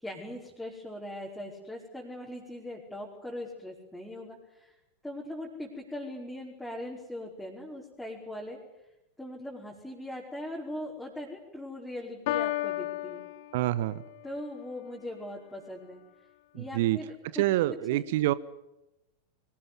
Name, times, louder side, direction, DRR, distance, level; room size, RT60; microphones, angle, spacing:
voice 1, 0.0-4.7 5.0-8.6 9.2-13.2 14.2-16.0 16.5-18.0, left 1 dB, 5° left, -3 dB, 5.0 m, -40 dB
Piano, 12.3-14.2, left 15 dB, 50° left, 1.5 m, -33 dB
voice 2, 13.5-14.0 16.5-17.0 17.3-18.3, right 16 dB, 50° right, 17 dB, 0.9 m, -26 dB
24.0 x 19.0 x 9.6 m, 0.94 s
figure-of-eight pair, 90°, 0 cm